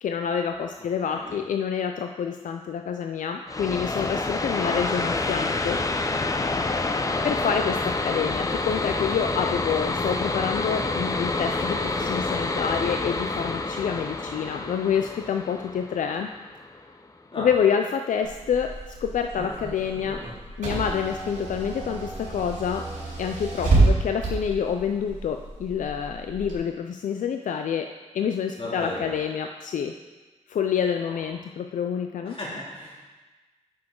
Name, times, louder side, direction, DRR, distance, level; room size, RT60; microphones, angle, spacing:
voice 1, 0.0-5.8 7.2-16.3 17.4-20.2 20.6-22.9 23.2-27.9 28.1-29.9 30.5-32.4, left 7 dB, 85° left, 5 dB, 0.4 m, -27 dB
voice 2, 0.8-1.4 4.6-4.8 7.1-7.5 17.3-17.5 28.6-29.2 31.0-31.3 32.3-32.9, left 2 dB, 45° left, -5 dB, 2.5 m, -37 dB
sound 1, 3.5-16.9, left 3 dB, 25° left, 0.5 m, -28 dB
Car / Engine, 18.2-26.5, right 2 dB, 75° right, 2.8 m, -28 dB
9.1 x 6.2 x 3.7 m, 1.3 s
wide cardioid pair, 95°, 13 cm